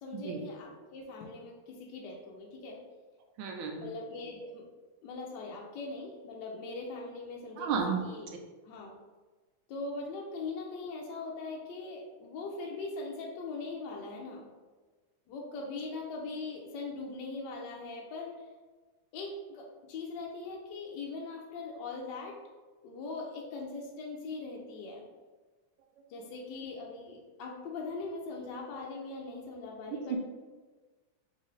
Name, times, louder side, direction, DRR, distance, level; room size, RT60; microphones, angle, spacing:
voice 1, 0.0-2.8 3.8-4.6 5.0-8.3 8.6-8.9 9.7-14.5 15.3-18.3 19.1-22.4 22.8-25.1 26.1-30.2, left 3 dB, 70° left, -1 dB, 1.0 m, -41 dB
voice 2, 3.4-3.9 7.6-8.0 30.1-30.2, right 6 dB, 75° right, 2 dB, 1.4 m, -32 dB
3.9 x 3.6 x 3.1 m, 1.3 s
omnidirectional pair, 2.4 m